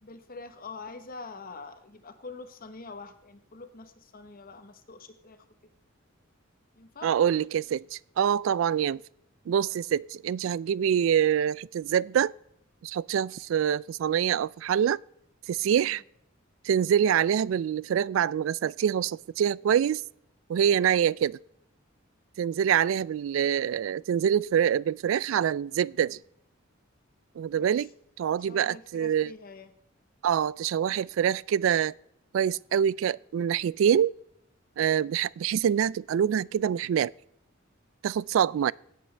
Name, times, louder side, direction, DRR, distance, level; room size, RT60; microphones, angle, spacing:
voice 1, 0.0-5.7 6.8-7.1 15.7-16.0 27.5-27.9 28.3-29.7, left 3 dB, 45° left, 1.1 m, -45 dB
voice 2, 7.0-9.0 9.5-12.3 12.8-15.0 15.5-16.0 16.6-20.0 20.5-21.4 22.4-26.2 27.4-27.9 28.2-29.3 30.2-31.9 32.3-34.1 34.8-37.1 38.0-38.7, right 9 dB, 75° right, 0.3 m, -25 dB
16.5 x 8.6 x 3.3 m
head